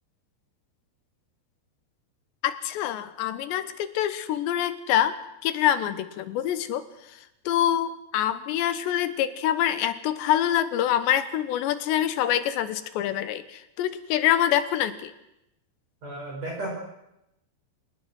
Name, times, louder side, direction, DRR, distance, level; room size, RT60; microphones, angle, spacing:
voice 1, 2.4-5.2 5.4-7.2 7.5-15.1, left 11 dB, 85° left, 12 dB, 3.3 m, -25 dB
voice 2, 16.0-16.7, right 1 dB, 40° right, -1 dB, 5.6 m, -33 dB
26.0 x 19.5 x 6.2 m, 0.86 s
omnidirectional pair, 5.0 m